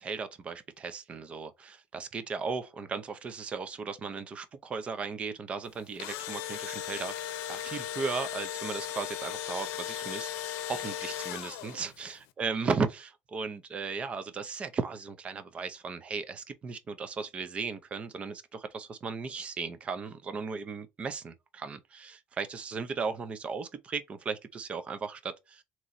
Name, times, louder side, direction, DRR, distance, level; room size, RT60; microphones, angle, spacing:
voice 1, 0.0-25.6, right 5 dB, 25° right, 0.6 m, -36 dB
Engine / Drill, 5.7-12.0, left 11 dB, 80° left, 0.6 m, -37 dB
3.8 x 3.0 x 4.0 m
cardioid pair, 155°, 5 cm